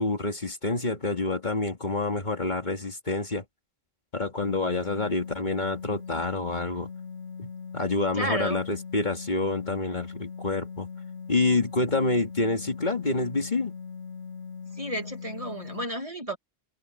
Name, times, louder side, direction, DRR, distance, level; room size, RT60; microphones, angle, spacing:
voice 1, 0.0-3.4 4.1-6.9 7.4-10.9 11.3-13.7, left 3 dB, 40° left, 2.2 m, -27 dB
sound 1, 4.4-15.8, left 5 dB, 75° left, 2.0 m, -40 dB
voice 2, 8.1-8.6 14.7-16.4, right 1 dB, 30° right, 1.9 m, -32 dB
omnidirectional pair, 1.3 m